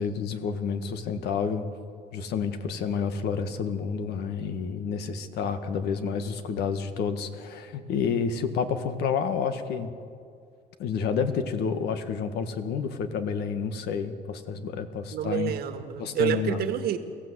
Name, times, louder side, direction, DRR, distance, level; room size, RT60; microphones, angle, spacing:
voice 1, 0.0-1.6 2.1-9.9 10.8-15.5 16.0-16.6, left 6 dB, 80° left, 8 dB, 1.7 m, -29 dB
voice 2, 15.1-17.0, right 9 dB, 70° right, 8 dB, 1.7 m, -28 dB
24.0 x 15.0 x 8.1 m, 2.4 s
cardioid pair, 110°, 17 cm